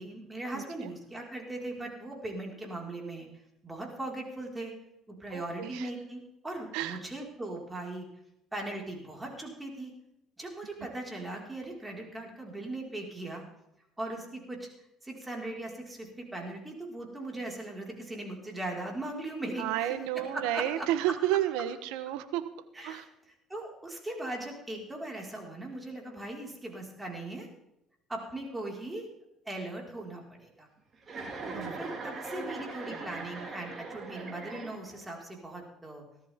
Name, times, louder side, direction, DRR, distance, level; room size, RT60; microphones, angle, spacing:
voice 1, 0.0-3.3 3.6-4.7 5.1-8.1 8.5-9.9 10.4-13.4 14.0-14.7 15.0-19.9 20.2-20.8 22.8-23.0 23.5-27.5 28.1-29.1 29.4-30.7 31.5-36.0, right 2 dB, 15° right, -1 dB, 5.0 m, -39 dB
voice 2, 0.5-0.9 5.3-5.9 6.7-7.0 19.6-22.5 22.8-23.1 31.5-31.7, right 12 dB, 85° right, 12 dB, 1.2 m, -31 dB
Chuckle chortle, 31.0-35.1, right 3 dB, 35° right, 4.2 m, -40 dB
18.0 x 13.5 x 3.7 m, 0.85 s
supercardioid pair, 90°, 0 cm